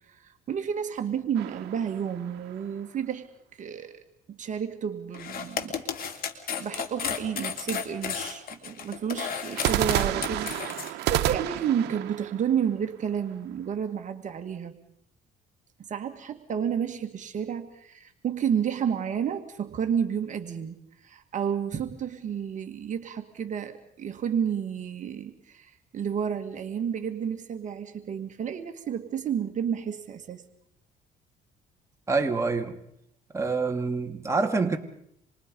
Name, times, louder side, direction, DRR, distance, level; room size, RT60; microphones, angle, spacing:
voice 1, 0.1-3.3 3.5-4.0 4.3-5.8 6.5-14.7 15.8-30.4, right 8 dB, 45° right, 2.0 m, -31 dB
sound 1, 1.3-2.8 9.6-13.5, right 13 dB, 80° right, 1.2 m, -30 dB
sound 2, 5.1-10.9, left 7 dB, 60° left, 3.2 m, -33 dB
voice 2, 32.1-32.8 33.3-34.8, right 4 dB, 15° right, 2.4 m, -26 dB
27.5 x 23.0 x 5.4 m
cardioid pair, 110°, 17 cm